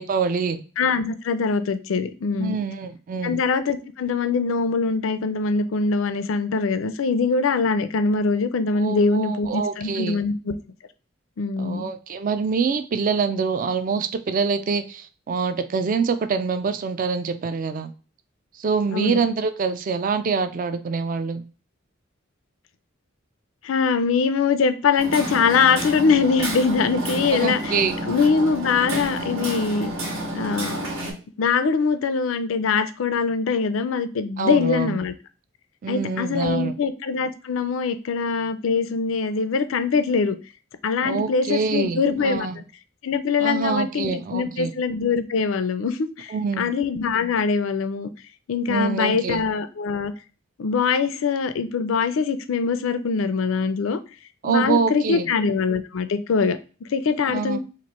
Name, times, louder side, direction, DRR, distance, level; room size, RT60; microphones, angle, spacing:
voice 1, 0.0-0.6 2.4-3.4 8.7-10.2 11.6-17.9 18.6-21.4 27.3-27.9 34.4-35.0 35.8-36.8 41.0-42.6 43.4-44.7 46.3-46.7 48.7-49.4 54.4-55.3 57.3-57.6, right 5 dB, 45° right, 0.3 m, -25 dB
voice 2, 0.8-2.6 3.2-10.5 11.4-11.9 18.9-19.2 23.6-27.8 28.1-29.9 30.3-30.9 31.4-35.1 35.9-40.4 40.8-42.6 43.0-48.1 48.5-50.1 50.6-54.0 54.4-57.6, left 5 dB, 80° left, 0.4 m, -23 dB
Hammer, 25.0-31.1, right 1 dB, 85° right, 1.3 m, -30 dB
3.0 x 2.5 x 4.1 m
head